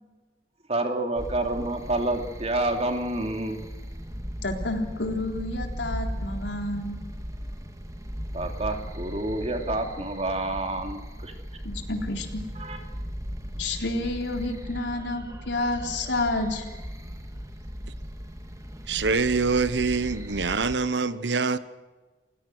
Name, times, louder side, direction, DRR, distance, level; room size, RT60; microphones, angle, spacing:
voice 1, 0.7-3.6 8.3-11.3 12.6-12.8, right 2 dB, 35° right, 3.0 m, -28 dB
sound 1, 1.2-20.8, equal, 20° right, 2.2 m, -37 dB
voice 2, 4.4-7.0 11.6-12.4 13.6-16.7, left 2 dB, 85° left, 3.7 m, -29 dB
voice 3, 18.9-21.6, right 4 dB, 80° right, 1.1 m, -25 dB
29.5 x 17.0 x 6.3 m
head